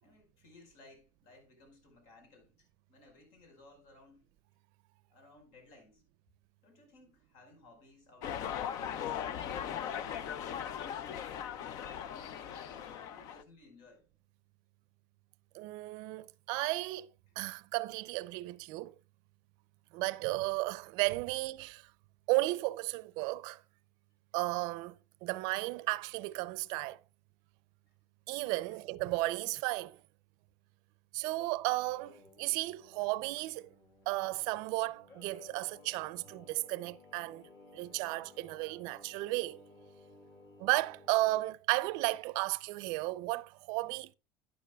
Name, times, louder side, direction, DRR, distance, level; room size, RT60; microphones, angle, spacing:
voice 1, 0.0-4.3 5.1-6.0 6.6-10.3 11.5-12.1 12.4-14.1 17.3-17.4 27.9-28.0 28.6-28.8, left 2 dB, 75° left, 4.9 m, -59 dB
sound 1, 8.2-13.4, left 9 dB, 55° left, 0.7 m, -39 dB
voice 2, 15.5-17.1 17.4-18.9 19.9-21.8 22.3-23.6 24.3-25.0 25.2-27.0 28.3-30.0 31.1-33.7 34.1-37.5 37.7-39.6 40.6-44.1, right 20 dB, 65° right, 0.5 m, -34 dB
Singing, 31.7-41.5, left 3 dB, 40° left, 2.4 m, -58 dB
12.0 x 9.8 x 2.3 m
cardioid pair, 150°, 7 cm